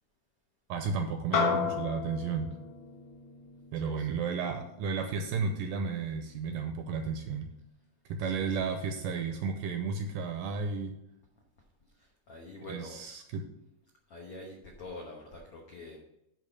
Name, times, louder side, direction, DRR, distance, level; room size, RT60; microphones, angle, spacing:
voice 1, 0.7-2.6 3.7-7.5 8.1-11.0 12.7-13.5, right 5 dB, 80° right, 6 dB, 2.0 m, -33 dB
sound 1, 1.3-6.0, left 7 dB, 55° left, 2.1 m, -34 dB
voice 2, 3.7-4.1 8.2-8.6 11.8-13.0 14.1-16.0, left 2 dB, 75° left, -1 dB, 1.3 m, -46 dB
10.5 x 3.9 x 7.0 m, 0.84 s
omnidirectional pair, 4.4 m